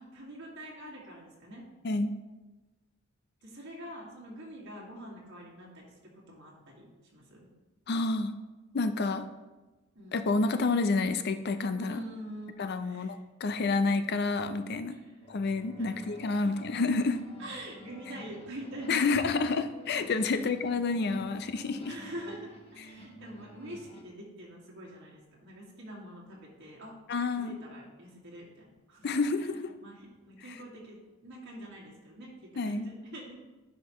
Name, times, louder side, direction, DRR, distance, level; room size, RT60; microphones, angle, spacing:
voice 1, 0.0-1.6 3.4-7.5 9.9-10.3 11.8-13.2 14.9-15.4 15.8-16.5 17.4-19.1 20.2-20.4 21.9-26.9 27.3-33.3, right 1 dB, 60° right, -4 dB, 1.9 m, -45 dB
voice 2, 7.9-8.3 8.7-9.3 10.1-12.0 12.6-14.9 15.3-17.2 18.9-21.9 27.1-27.6 29.0-29.7 32.6-32.8, left 3 dB, 55° left, 10 dB, 0.5 m, -29 dB
sound 1, 15.2-24.0, equal, 30° left, 0.9 m, -50 dB
10.0 x 5.1 x 3.0 m, 1.2 s
head